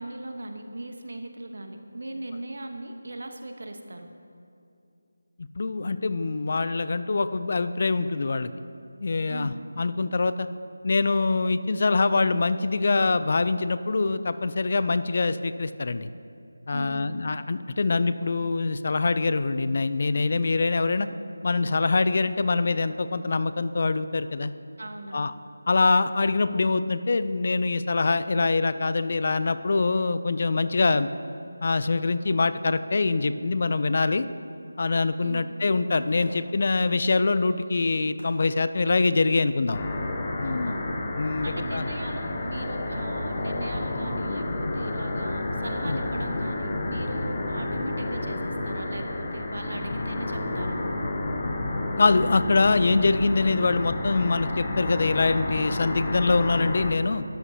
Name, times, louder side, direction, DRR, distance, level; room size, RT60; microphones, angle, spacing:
voice 1, 0.0-4.1 9.3-9.6 16.7-17.1 24.8-25.3 35.2-35.5 40.4-40.8 41.4-50.8, right 1 dB, 70° right, 5 dB, 1.0 m, -38 dB
voice 2, 5.6-8.5 9.0-10.5 10.8-16.1 16.7-21.1 21.4-24.5 25.1-25.3 25.7-31.1 31.6-34.3 34.8-39.8 40.4-40.8 41.1-41.9 45.9-46.0 52.0-57.2, left 3 dB, 50° left, 13 dB, 0.4 m, -24 dB
Fireworks, 36.2-39.5 40.1-40.2, left 1 dB, 80° left, 2.2 m, -48 dB
sound 1, 39.7-56.9, left 2 dB, 25° left, 0.9 m, -30 dB
12.5 x 11.0 x 2.8 m, 2.5 s
figure-of-eight pair, 165°, 0 cm